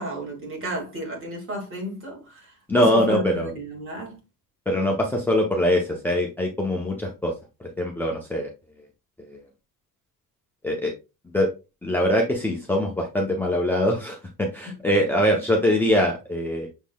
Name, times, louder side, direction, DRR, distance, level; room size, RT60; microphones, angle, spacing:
voice 1, 0.0-4.2, right 1 dB, 40° right, 2.1 m, -33 dB
voice 2, 2.7-3.5 4.7-7.3 7.6-8.5 9.2-9.4 10.6-10.9 11.3-11.5 11.8-16.7, equal, 5° left, 0.6 m, -23 dB
6.2 x 3.7 x 2.2 m
cardioid pair, 155°, 34 cm